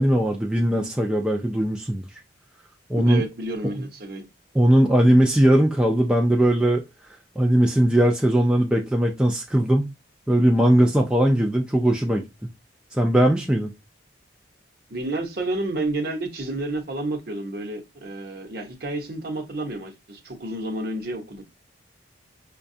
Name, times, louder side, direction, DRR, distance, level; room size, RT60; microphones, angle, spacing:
voice 1, 0.0-2.1 2.9-3.3 3.6-3.7 4.6-6.8 7.4-9.9 10.3-12.2 12.9-13.7, right 1 dB, 5° right, 0.3 m, -19 dB
voice 2, 3.0-4.2 14.9-21.4, right 2 dB, 50° right, 0.8 m, -30 dB
5.7 x 2.2 x 2.6 m
head